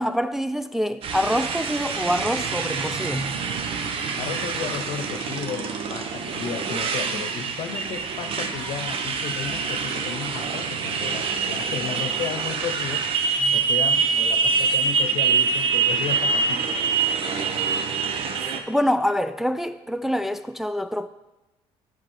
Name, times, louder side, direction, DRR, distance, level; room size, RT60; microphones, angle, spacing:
voice 1, 0.0-3.4 13.4-13.6 18.5-21.1, equal, 5° right, 0.4 m, -26 dB
Motorcycle, 1.0-18.6, right 5 dB, 60° right, 0.9 m, -25 dB
voice 2, 4.2-13.1 13.5-17.0, left 9 dB, 70° left, 0.8 m, -34 dB
7.5 x 4.1 x 6.4 m
supercardioid pair, 70°, 11 cm